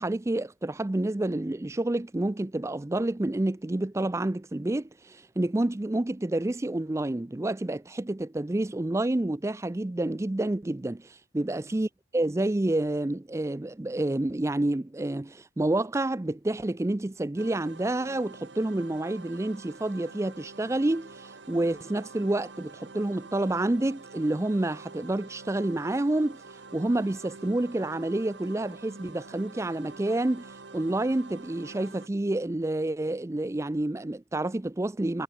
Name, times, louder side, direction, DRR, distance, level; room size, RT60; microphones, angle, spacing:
voice 1, 0.0-11.9 12.1-26.4 26.7-30.4 30.7-35.2, right 1 dB, 15° right, 0.4 m, -29 dB
sound 1, 17.4-32.1, right 3 dB, 70° right, 1.3 m, -47 dB
head